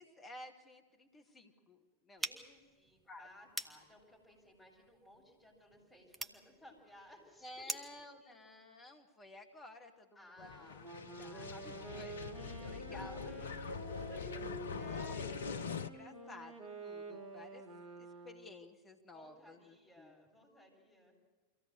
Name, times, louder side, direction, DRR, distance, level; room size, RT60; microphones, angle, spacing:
voice 1, 0.0-2.2 3.1-3.3 7.4-13.3 14.2-14.4 14.8-17.6 18.0-20.1, left 2 dB, 20° left, 4 dB, 2.3 m, -54 dB
voice 2, 2.2-7.6 10.1-10.9 11.4-13.4 13.7-14.5 18.1-18.3 19.1-21.2, left 1 dB, 5° left, -3 dB, 7.3 m, -59 dB
sound 1, 2.2-8.0, right 3 dB, 15° right, 1.3 m, -46 dB
sound 2, 10.4-15.9, left 6 dB, 65° left, 0.7 m, -43 dB
Wind instrument woodwind instrument, 10.8-18.7, right 3 dB, 40° right, 2.9 m, -49 dB
24.0 x 16.5 x 7.9 m, 1.3 s
figure-of-eight pair, 90°, 0 cm